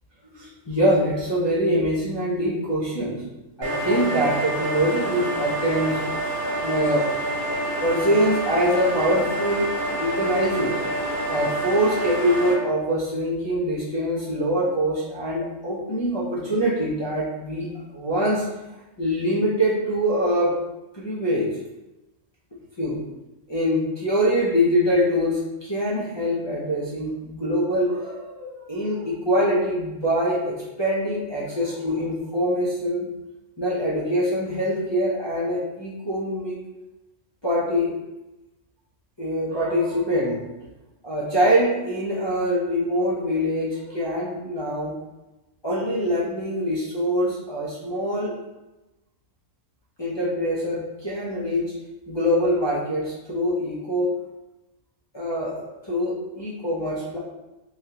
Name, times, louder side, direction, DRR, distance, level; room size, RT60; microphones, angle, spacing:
voice 1, 0.3-3.2 3.6-6.0 6.6-7.0 7.8-9.7 10.0-10.8 11.3-17.7 17.9-18.4 19.0-20.5 20.9-21.5 22.8-23.0 23.5-33.1 33.6-36.6 37.4-37.9 39.2-40.5 41.0-44.9 45.6-48.3 50.0-51.7 52.1-54.1 55.1-57.2, equal, 35° left, -9 dB, 0.4 m, -24 dB
sound 1, 3.6-12.5, right 1 dB, 40° right, 1.2 m, -27 dB
3.5 x 2.4 x 2.8 m, 1.0 s
omnidirectional pair, 1.4 m